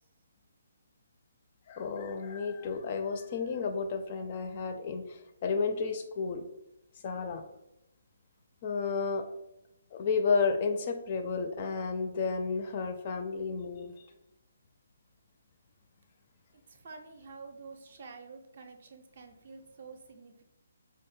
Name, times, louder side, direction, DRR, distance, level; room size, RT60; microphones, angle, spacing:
voice 1, 1.7-6.5 7.0-7.4 8.6-9.3 9.9-14.1, left 5 dB, 35° left, 6 dB, 0.4 m, -32 dB
voice 2, 16.7-20.3, right 4 dB, 50° right, 6 dB, 0.5 m, -48 dB
4.3 x 2.0 x 3.2 m, 0.85 s
figure-of-eight pair, 140°, 0 cm